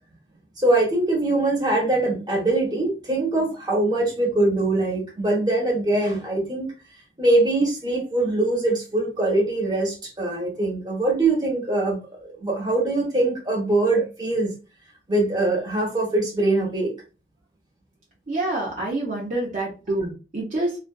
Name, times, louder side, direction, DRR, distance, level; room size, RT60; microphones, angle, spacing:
voice 1, 0.6-6.7 7.2-14.5 15.1-16.9, right 2 dB, 25° right, -2 dB, 0.9 m, -22 dB
voice 2, 18.3-20.8, right 2 dB, 45° right, -4 dB, 0.6 m, -27 dB
2.4 x 2.4 x 2.2 m, 0.32 s
head